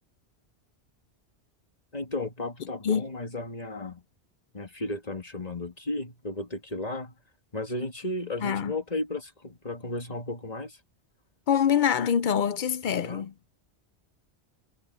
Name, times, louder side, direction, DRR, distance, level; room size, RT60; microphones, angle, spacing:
voice 1, 1.9-4.0 4.5-7.1 7.5-10.8 12.9-13.3, left 2 dB, 35° left, 2.4 m, -34 dB
voice 2, 8.4-8.8 11.5-13.3, left 8 dB, 55° left, 0.6 m, -25 dB
omnidirectional pair, 1.2 m